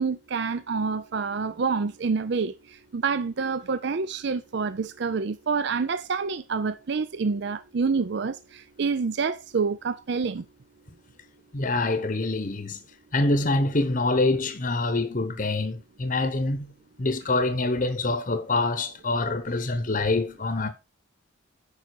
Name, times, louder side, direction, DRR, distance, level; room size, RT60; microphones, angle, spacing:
voice 1, 0.0-2.5 2.9-10.4, right 5 dB, 55° right, 0.5 m, -27 dB
voice 2, 11.5-12.8 13.1-16.7 17.0-20.7, left 2 dB, 40° left, 0.9 m, -25 dB
9.7 x 5.2 x 4.7 m
head